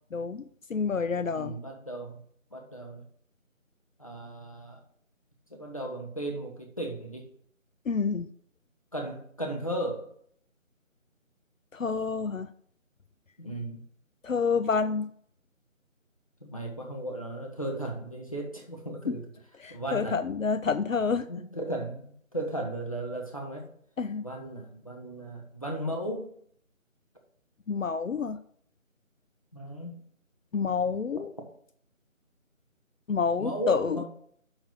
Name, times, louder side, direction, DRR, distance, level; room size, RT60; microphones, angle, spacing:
voice 1, 0.1-0.4 0.7-1.6 7.9-8.3 11.7-12.5 14.2-15.1 19.1-19.2 19.6-21.3 24.0-24.2 27.7-28.4 30.5-31.3 33.1-34.0, left 5 dB, 70° left, 11 dB, 0.6 m, -28 dB
voice 2, 1.3-2.2 2.5-3.0 4.0-4.8 5.5-7.3 8.9-10.1 13.4-13.8 16.4-19.2 19.7-20.2 21.3-23.7 24.2-26.3 29.5-30.0 33.4-34.0, right 1 dB, 25° left, 0 dB, 1.1 m, -35 dB
6.0 x 4.9 x 6.2 m, 0.62 s
figure-of-eight pair, 170°, 41 cm